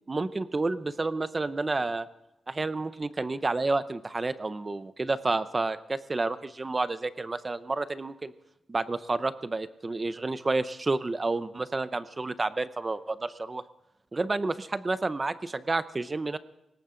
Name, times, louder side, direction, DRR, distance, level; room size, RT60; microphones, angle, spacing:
voice 1, 0.1-2.1 2.5-8.3 8.7-13.6 14.1-16.4, right 3 dB, 20° right, 13 dB, 0.6 m, -30 dB
20.5 x 18.5 x 3.8 m, 0.87 s
wide cardioid pair, 180°, 0 cm